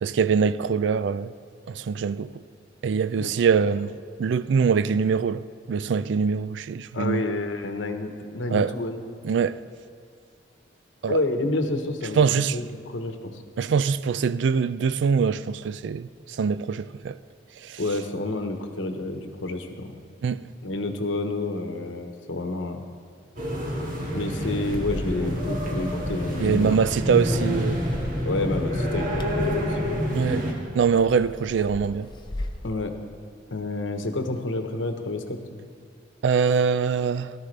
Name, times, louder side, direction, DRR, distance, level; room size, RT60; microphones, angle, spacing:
voice 1, 0.0-1.3 1.7-2.3 2.8-7.3 8.5-8.7 9.2-9.6 11.0-11.2 12.2-12.6 13.6-16.1 16.4-17.2 17.6-17.8 20.2-20.4 26.4-28.0 30.1-30.5 30.7-32.1 36.2-37.3, right 6 dB, 70° right, 0.4 m, -23 dB
voice 2, 6.9-9.0 11.1-13.4 17.8-20.0 20.6-22.8 24.1-26.9 27.3-27.6 28.2-29.9 32.6-32.9 33.5-35.6, left 2 dB, 85° left, 1.1 m, -29 dB
sound 1, 23.4-30.5, equal, 45° right, 1.8 m, -28 dB
Bark, 24.7-32.7, left 1 dB, 25° left, 0.7 m, -37 dB
17.0 x 13.0 x 3.3 m
head